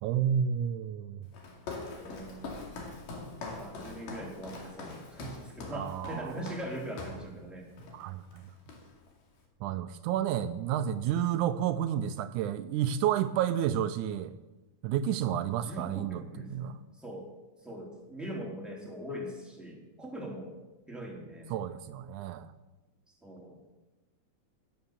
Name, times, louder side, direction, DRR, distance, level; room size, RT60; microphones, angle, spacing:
voice 1, 0.0-1.2 5.7-6.3 7.9-8.4 9.6-14.3 14.8-16.8 21.5-22.5, right 10 dB, 80° right, 11 dB, 2.0 m, -31 dB
Walk footsteps, 1.3-7.3 7.8-8.0 8.3-9.1, left 3 dB, 90° left, 4.0 m, -43 dB
voice 2, 2.0-2.4 3.6-7.7 15.6-17.3 17.6-20.5 20.9-21.5 23.2-23.6, right 1 dB, ahead, -3 dB, 3.4 m, -41 dB
16.5 x 9.5 x 7.3 m, 1.1 s
omnidirectional pair, 3.7 m